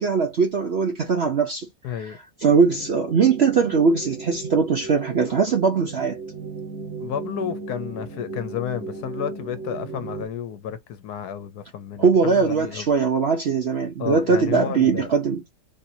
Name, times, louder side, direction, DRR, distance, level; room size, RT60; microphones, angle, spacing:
voice 1, 0.0-1.7 2.0-2.1 2.4-6.2 12.0-15.4, right 5 dB, 60° right, 0.7 m, -20 dB
voice 2, 1.8-2.2 7.0-12.9 14.0-15.1, left 9 dB, 70° left, 1.2 m, -31 dB
sound 1, 2.6-10.3, right 3 dB, 40° right, 1.5 m, -36 dB
4.3 x 2.9 x 2.7 m
omnidirectional pair, 1.8 m